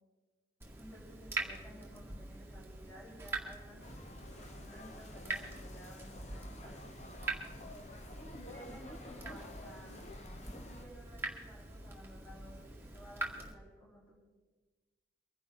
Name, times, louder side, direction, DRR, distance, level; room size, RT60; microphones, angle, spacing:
Water tap faucet / Drip, 0.6-13.5, right 3 dB, 10° right, 1.9 m, -44 dB
voice 1, 0.8-4.0 4.3-7.5 8.3-9.9 10.3-14.1, equal, 10° left, -6 dB, 4.0 m, -55 dB
sound 1, 3.8-10.9, left 1 dB, 35° left, 1.0 m, -50 dB
24.5 x 11.0 x 3.9 m, 1.2 s
head